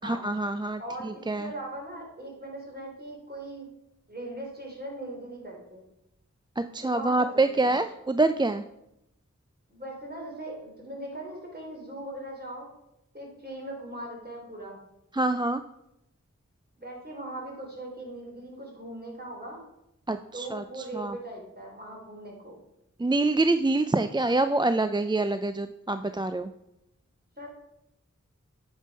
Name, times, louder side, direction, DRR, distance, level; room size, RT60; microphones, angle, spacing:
voice 1, 0.0-1.5 6.6-8.6 15.1-15.6 20.1-21.1 23.0-26.5, right 2 dB, 15° right, 9 dB, 0.3 m, -26 dB
voice 2, 0.8-3.7 4.1-5.9 6.8-7.7 9.7-12.7 13.1-14.8 16.8-19.6 20.3-22.6 27.4-27.5, right 1 dB, 35° right, -2 dB, 3.4 m, -40 dB
8.7 x 5.3 x 5.3 m, 0.84 s
wide cardioid pair, 45°, 30 cm